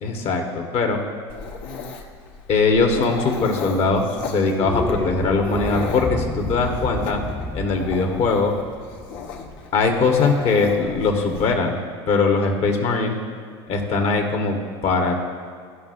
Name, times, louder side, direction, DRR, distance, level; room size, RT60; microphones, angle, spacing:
voice 1, 0.0-1.0 2.5-7.2 7.5-8.5 9.7-11.8 12.1-13.2 13.7-14.6 14.8-15.2, left 4 dB, 50° left, 2 dB, 1.4 m, -21 dB
Dog, 1.3-11.5, left 5 dB, 70° left, 1.2 m, -35 dB
sound 1, 4.5-10.9, left 1 dB, 10° left, 0.6 m, -31 dB
14.5 x 5.5 x 2.6 m, 2.1 s
hypercardioid pair, 90°, 14 cm